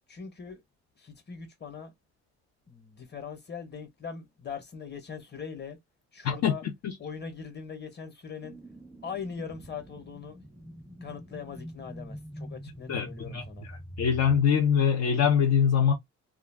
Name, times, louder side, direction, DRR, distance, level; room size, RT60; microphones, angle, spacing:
voice 1, 0.1-0.6 0.9-1.9 2.7-5.8 6.1-6.6 7.0-8.6 9.0-10.4 11.0-13.7, left 6 dB, 35° left, 1.2 m, -41 dB
sound 1, 8.4-14.4, equal, 5° right, 0.4 m, -44 dB
voice 2, 12.9-13.4 14.0-15.9, left 7 dB, 60° left, 0.7 m, -23 dB
2.3 x 2.2 x 3.5 m
cardioid pair, 90°, 30 cm